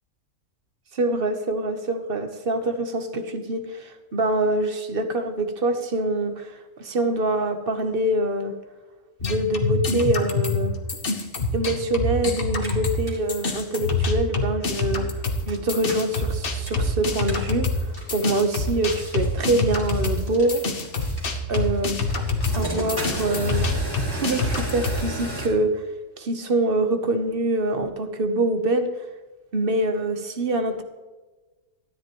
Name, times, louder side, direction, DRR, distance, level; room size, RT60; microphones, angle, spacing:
voice 1, 0.9-8.5 9.2-10.7 11.5-15.1 15.5-20.6 21.5-22.0 22.5-23.7 24.1-25.9 26.2-28.9 29.5-30.8, right 2 dB, 45° right, 8 dB, 1.1 m, -25 dB
sound 1, 9.2-13.0 13.3-25.0, left 3 dB, 45° left, 1.2 m, -26 dB
sound 2, 12.4-25.5, right 1 dB, 15° right, 2.7 m, -36 dB
13.0 x 10.0 x 3.0 m, 1.2 s
omnidirectional pair, 1.5 m